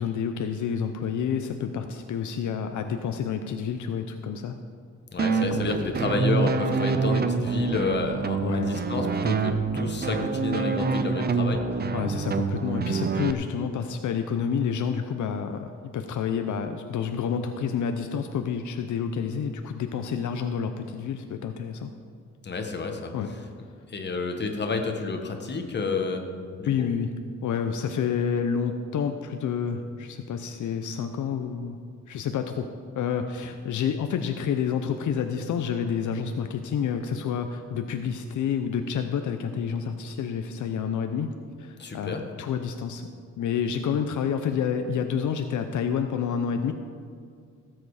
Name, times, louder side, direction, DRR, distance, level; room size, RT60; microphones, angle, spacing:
voice 1, 0.0-4.6 5.5-5.7 8.4-8.7 11.9-21.9 23.1-23.3 26.7-27.1 27.4-31.8 32.1-32.7 32.9-41.3 41.6-43.1 43.4-46.7, left 7 dB, 75° left, 6 dB, 0.7 m, -29 dB
voice 2, 5.1-11.8 22.4-23.1 23.9-26.3 26.6-26.9 41.8-42.2, left 3 dB, 35° left, 4 dB, 1.4 m, -30 dB
sound 1, 5.2-13.3, right 5 dB, 30° right, 0.6 m, -26 dB
17.5 x 7.9 x 4.9 m, 2.1 s
cardioid pair, 125°, 30 cm